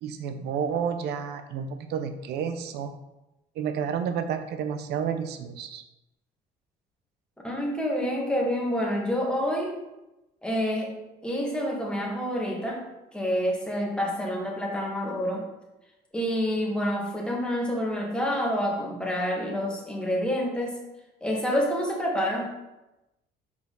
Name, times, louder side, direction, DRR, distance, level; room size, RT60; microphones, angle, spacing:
voice 1, 0.0-3.0 3.6-5.8, right 7 dB, 80° right, 8 dB, 0.7 m, -30 dB
voice 2, 7.4-9.8 10.4-11.0 11.2-12.8 13.1-15.5 16.1-20.8 21.2-22.5, equal, 5° left, -2 dB, 1.6 m, -28 dB
5.7 x 4.6 x 3.9 m, 0.97 s
cardioid pair, 110°, 17 cm